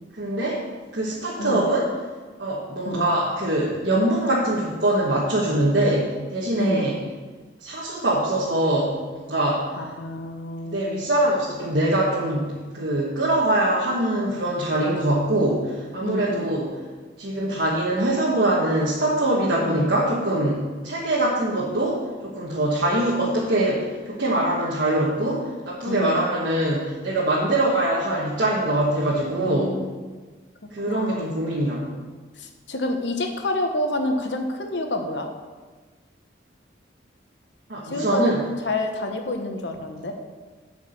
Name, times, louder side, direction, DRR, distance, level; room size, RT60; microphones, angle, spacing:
voice 1, 0.2-0.6 0.9-1.8 2.4-6.9 7.6-9.0 9.3-9.7 10.7-16.7 17.2-29.8 30.7-31.8 37.7-38.4, right 1 dB, 65° right, -6 dB, 1.4 m, -23 dB
voice 2, 1.4-1.7 2.8-3.1 6.5-6.9 9.8-11.0 16.0-16.5 19.6-19.9 25.8-26.3 29.4-30.0 30.9-31.3 32.4-35.3 37.8-38.3 38.6-40.1, left 1 dB, 70° left, 4 dB, 1.0 m, -28 dB
8.3 x 4.8 x 7.1 m, 1.4 s
head